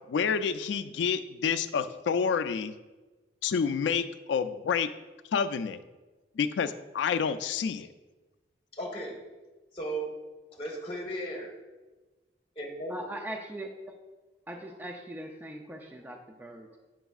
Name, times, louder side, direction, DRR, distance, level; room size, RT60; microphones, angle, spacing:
voice 1, 0.1-2.7 3.4-4.9 5.3-5.8 6.4-7.9, left 6 dB, 85° left, 12 dB, 0.3 m, -28 dB
voice 2, 8.7-9.2 9.7-10.1 10.5-11.5 12.6-13.0, right 1 dB, 30° left, 1 dB, 1.1 m, -35 dB
voice 3, 12.9-13.7 14.5-16.8, right 1 dB, 10° right, 3 dB, 0.4 m, -40 dB
7.8 x 6.0 x 2.3 m, 1.2 s
head